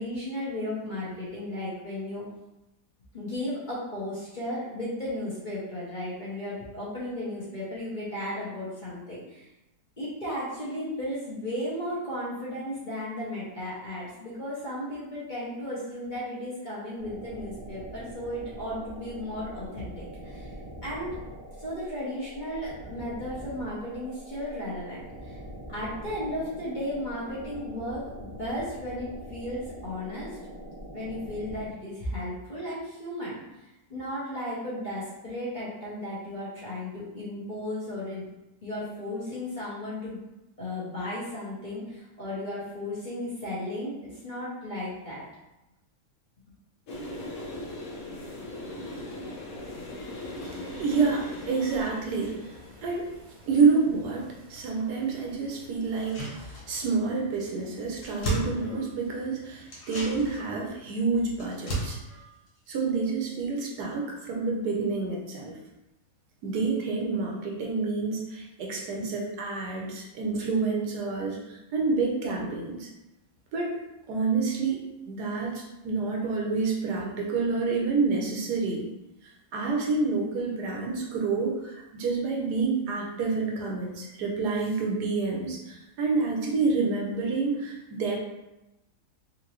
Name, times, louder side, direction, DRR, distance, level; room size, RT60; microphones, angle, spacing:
voice 1, 0.0-2.2 3.1-9.5 10.0-20.5 20.8-21.1 21.6-25.4 25.7-30.4 30.9-33.5 33.9-38.3 38.6-40.2 40.6-45.2, left 1 dB, 35° left, -9 dB, 0.9 m, -35 dB
sound 1, 17.0-31.7, right 1 dB, 45° right, 0.4 m, -43 dB
sound 2, 46.9-56.2, left 1 dB, 60° left, 1.1 m, -41 dB
voice 2, 50.4-53.1 53.5-62.0 62.7-65.6 66.4-72.9 73.5-73.8 74.1-74.8 75.1-78.8 79.5-88.2, right 4 dB, 75° right, -1 dB, 1.3 m, -28 dB
sound 3, 55.9-57.1 57.3-57.4 57.7-59.2 59.7-63.4 63.7-63.8, right 1 dB, 80° left, 1.8 m, -36 dB
3.9 x 2.6 x 3.0 m, 0.95 s
omnidirectional pair, 1.8 m